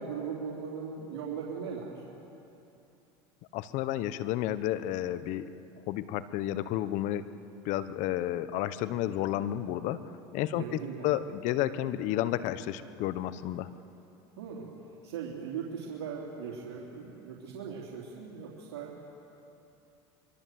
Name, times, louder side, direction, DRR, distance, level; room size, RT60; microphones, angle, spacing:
voice 1, 0.0-2.0 10.5-11.1 14.4-14.7 15.0-18.9, right 6 dB, 80° right, -4 dB, 3.4 m, -39 dB
voice 2, 3.5-5.5 5.9-7.2 7.6-10.6 11.0-13.7, left 13 dB, 60° left, 13 dB, 1.2 m, -31 dB
25.0 x 23.0 x 7.8 m, 2.9 s
hypercardioid pair, 95°, 14 cm